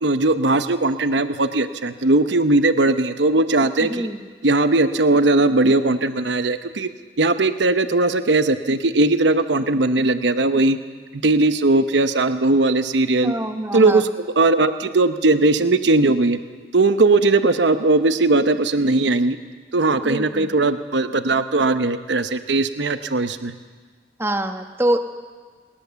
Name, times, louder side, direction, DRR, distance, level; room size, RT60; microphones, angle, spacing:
voice 1, 0.0-4.1 4.4-6.9 7.2-10.8 11.1-13.3 13.7-16.4 16.7-19.4 19.7-23.5, right 2 dB, 80° right, 10 dB, 0.9 m, -19 dB
voice 2, 13.2-14.0 20.0-20.5 24.2-25.0, right 1 dB, 15° right, 7 dB, 1.1 m, -24 dB
20.0 x 20.0 x 7.0 m, 1.5 s
head